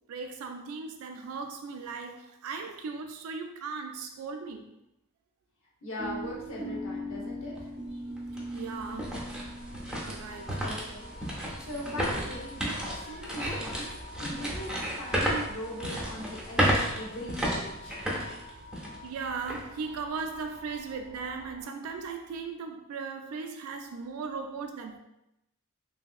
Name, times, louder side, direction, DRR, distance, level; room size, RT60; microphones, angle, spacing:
voice 1, 0.1-4.8 8.5-9.3 10.0-10.6 19.0-25.0, right 5 dB, 75° right, 0.3 m, -37 dB
voice 2, 5.8-7.7 10.6-18.0, equal, 65° left, 0.9 m, -40 dB
sound 1, 6.0-21.6, equal, 60° right, 0.8 m, -43 dB
sound 2, 7.6-7.7 8.2-19.1 19.5-19.6 20.2-20.5, equal, 5° right, 0.5 m, -32 dB
3.1 x 2.7 x 2.3 m
head